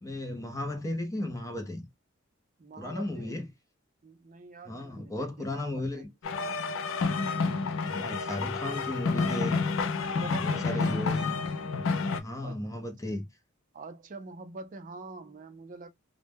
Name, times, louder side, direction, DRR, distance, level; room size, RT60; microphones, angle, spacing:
voice 1, 0.0-1.9 2.8-3.5 4.7-6.1 7.8-9.6 10.4-11.4 12.2-13.2, left 1 dB, 15° left, 0.5 m, -35 dB
voice 2, 2.6-3.3 4.0-6.1 10.1-11.0 12.4-12.6 13.7-15.9, right 3 dB, 40° right, 0.5 m, -44 dB
sound 1, 6.2-12.2, left 4 dB, 70° left, 0.4 m, -29 dB
2.1 x 2.1 x 3.3 m
head